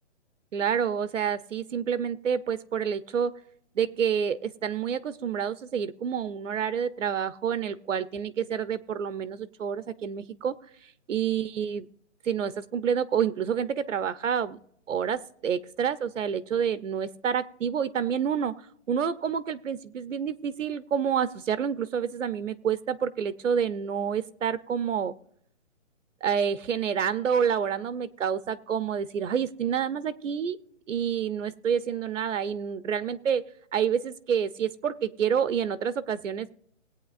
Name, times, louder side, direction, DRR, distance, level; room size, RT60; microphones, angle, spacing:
voice 1, 0.5-3.3 3.8-10.5 11.1-11.9 12.2-14.6 14.9-18.5 18.9-25.1 26.2-30.6 30.9-33.4 33.7-36.5, right 7 dB, 80° right, 15 dB, 0.7 m, -28 dB
20.0 x 8.7 x 2.5 m, 0.68 s
hypercardioid pair, 180°, 37 cm